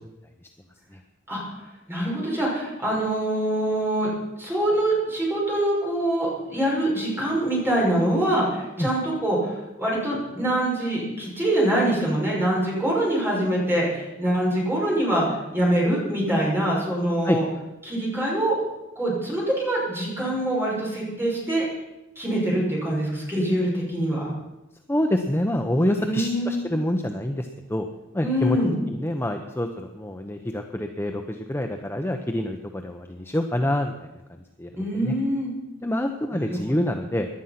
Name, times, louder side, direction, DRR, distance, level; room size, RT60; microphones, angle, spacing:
voice 1, 1.9-4.1 4.4-17.4 17.8-18.6 19.0-21.6 22.2-24.3 25.9-26.6 28.2-28.7 34.8-35.5 36.3-36.8, right 1 dB, 10° right, -4 dB, 5.8 m, -24 dB
voice 2, 24.9-27.9 28.1-28.6 28.9-33.9 34.6-35.1 35.8-37.3, left 1 dB, 10° left, 4 dB, 0.7 m, -26 dB
17.5 x 11.5 x 5.8 m, 1.0 s
head